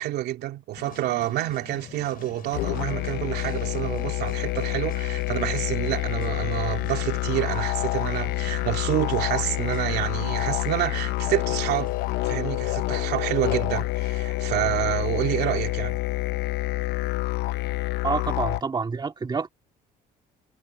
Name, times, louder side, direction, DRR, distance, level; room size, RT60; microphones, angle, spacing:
voice 1, 0.0-11.9 12.2-16.0, right 14 dB, 80° right, 2.9 m, -28 dB
sound 1, 0.8-12.1, left 10 dB, 60° left, 5.9 m, -46 dB
sound 2, 2.5-18.6, left 18 dB, 85° left, 0.6 m, -27 dB
voice 2, 18.0-19.5, right 5 dB, 25° right, 2.3 m, -27 dB
cardioid pair, 110°, 17 cm